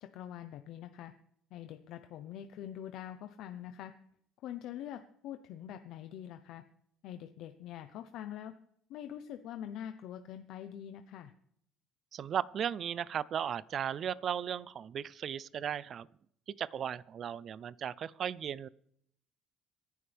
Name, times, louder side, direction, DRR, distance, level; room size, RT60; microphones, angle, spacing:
voice 1, 0.0-1.1 1.5-3.9 4.4-6.6 7.0-8.5 8.9-11.3, left 10 dB, 65° left, 8 dB, 0.8 m, -44 dB
voice 2, 12.1-16.1 16.6-18.7, right 8 dB, 40° right, 20 dB, 0.5 m, -36 dB
26.0 x 11.0 x 3.5 m, 0.70 s
cardioid pair, 155°, 0 cm